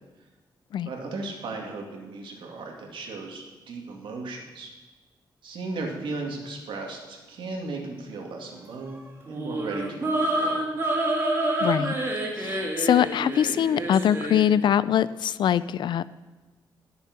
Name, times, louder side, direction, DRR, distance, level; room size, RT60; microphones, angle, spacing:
voice 1, 0.9-4.7 5.4-10.7, right 3 dB, 80° right, 1 dB, 2.2 m, -36 dB
sound 1, 9.3-14.5, right 1 dB, 30° right, 1.7 m, -28 dB
voice 2, 11.6-11.9 12.4-16.0, left 9 dB, 65° left, 17 dB, 0.3 m, -23 dB
12.5 x 6.8 x 6.1 m, 1.2 s
wide cardioid pair, 175°, 8 cm